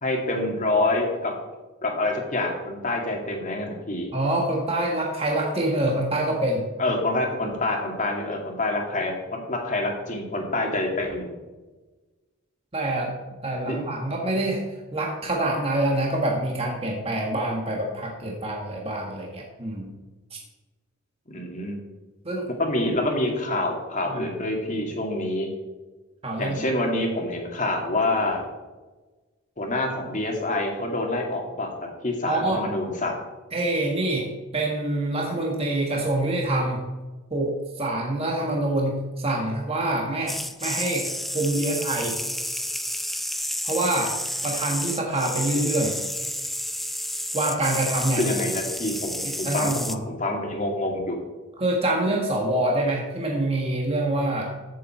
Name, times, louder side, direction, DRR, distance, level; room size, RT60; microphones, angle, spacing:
voice 1, 0.0-1.3 1.8-4.1 6.8-11.3 13.7-13.9 21.3-21.8 22.6-25.5 26.4-28.4 29.6-31.7 32.0-33.2 48.2-51.2, left 2 dB, 35° left, 1 dB, 2.2 m, -26 dB
voice 2, 4.1-6.6 12.7-13.2 13.4-14.6 14.9-19.9 22.2-22.5 24.1-24.3 26.2-26.6 32.2-32.6 33.5-34.3 34.5-36.9 37.3-42.2 43.6-44.2 44.4-46.0 47.3-48.2 49.2-50.0 51.6-54.5, right 1 dB, 25° right, 0 dB, 1.5 m, -26 dB
sound 1, 40.3-50.0, equal, ahead, 0.4 m, -31 dB
15.0 x 7.3 x 4.4 m, 1.2 s
head